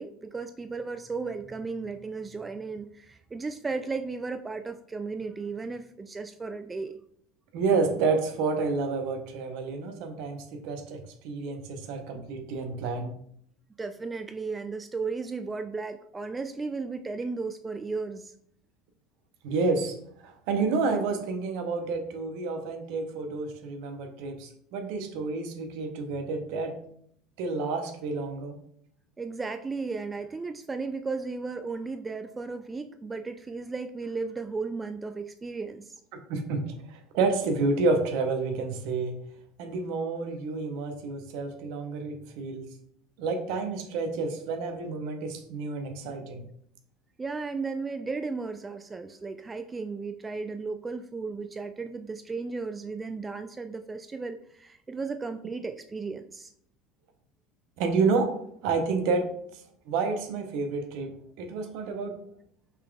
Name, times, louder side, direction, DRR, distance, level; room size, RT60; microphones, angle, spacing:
voice 1, 0.0-7.0 13.8-18.3 29.2-36.0 47.2-56.5, right 4 dB, 20° right, 8 dB, 0.3 m, -35 dB
voice 2, 7.5-13.1 19.4-20.0 20.2-26.8 27.4-28.6 36.3-36.6 36.9-39.2 39.6-42.7 43.2-46.4 57.8-58.4 58.6-59.6 59.9-62.2, right 4 dB, 60° right, 5 dB, 0.7 m, -29 dB
5.6 x 3.9 x 2.3 m, 0.68 s
hypercardioid pair, 70°, 0 cm